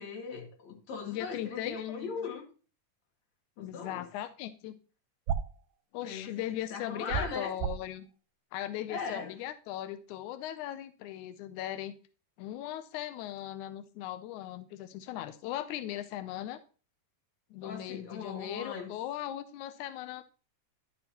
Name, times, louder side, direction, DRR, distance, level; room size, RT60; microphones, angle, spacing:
voice 1, 0.0-2.4 3.6-4.0 6.0-6.3 6.7-7.5 8.9-9.3 17.6-18.9, left 5 dB, 55° left, 1 dB, 3.1 m, -39 dB
voice 2, 1.1-1.9 3.6-4.8 5.9-8.1 8.5-11.9 12.4-16.6 17.5-20.2, left 12 dB, 85° left, 11 dB, 1.7 m, -38 dB
sound 1, 5.3-5.6 7.1-7.9, right 7 dB, 85° right, 2.5 m, -31 dB
11.0 x 6.3 x 2.9 m, 0.37 s
omnidirectional pair, 4.0 m